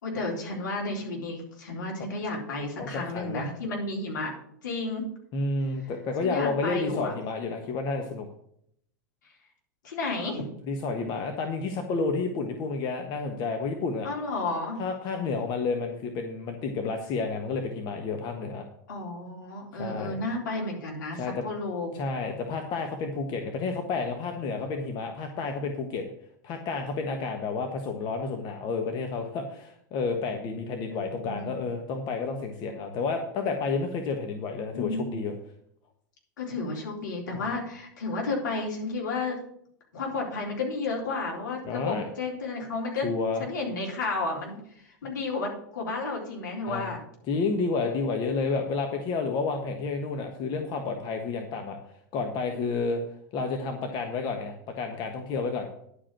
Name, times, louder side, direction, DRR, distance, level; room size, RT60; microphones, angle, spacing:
voice 1, 0.0-4.3 4.6-5.0 6.2-7.1 9.8-10.5 14.0-14.8 18.9-21.9 31.2-31.5 34.7-35.2 36.4-39.4 39.9-43.1 43.4-44.6 45.0-47.0, left 3 dB, 75° left, -1 dB, 3.8 m, -32 dB
voice 2, 2.8-3.5 5.3-8.3 10.7-14.1 14.8-18.6 19.7-20.2 21.1-21.4 21.9-26.0 26.4-35.3 37.3-37.4 41.6-42.1 43.0-43.4 46.7-47.0 47.3-51.8 52.1-53.0 53.3-55.7, left 4 dB, 45° left, 4 dB, 1.4 m, -30 dB
11.0 x 5.1 x 7.6 m, 0.70 s
hypercardioid pair, 100°, 10 cm